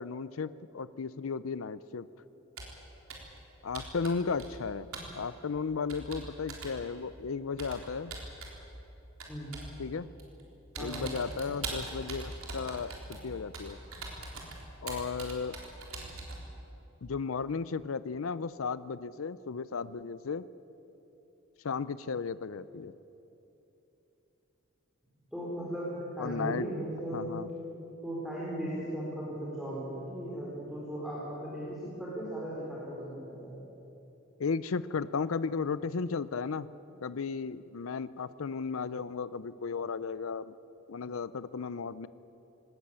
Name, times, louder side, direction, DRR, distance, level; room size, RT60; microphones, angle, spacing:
voice 1, 0.0-2.1 3.6-4.9 5.2-8.1 9.8-10.1 10.8-13.8 14.8-15.6 17.0-20.4 21.6-22.9 26.2-26.7 27.1-27.5 34.4-36.7 37.0-40.5 40.9-42.1, left 5 dB, 70° left, 16 dB, 0.5 m, -35 dB
Computer keyboard, 2.6-2.8 3.1-3.4 3.8-4.7 4.9-5.1 5.9-6.8 7.6-8.6 9.2-9.8 10.2-10.4 10.8-16.4, right 3 dB, 85° right, 3.8 m, -42 dB
voice 2, 10.8-11.1 25.3-27.4 28.0-33.6, right 1 dB, ahead, -7 dB, 4.1 m, -37 dB
20.0 x 18.0 x 8.8 m, 3.0 s
head